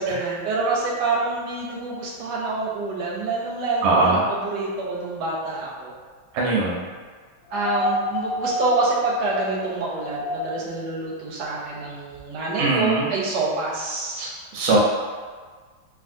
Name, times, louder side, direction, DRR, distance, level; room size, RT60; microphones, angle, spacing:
voice 1, 0.0-5.9 7.5-14.2, right 3 dB, 70° right, -4 dB, 1.0 m, -27 dB
voice 2, 3.8-4.2 6.3-6.9 12.6-13.1 14.2-14.3 14.5-14.8, right 3 dB, 85° right, -3 dB, 1.4 m, -20 dB
sound 1, 7.5-10.7 12.2-12.3, left 1 dB, 65° left, 1.3 m, -28 dB
3.4 x 2.4 x 2.5 m, 1.5 s
omnidirectional pair, 2.2 m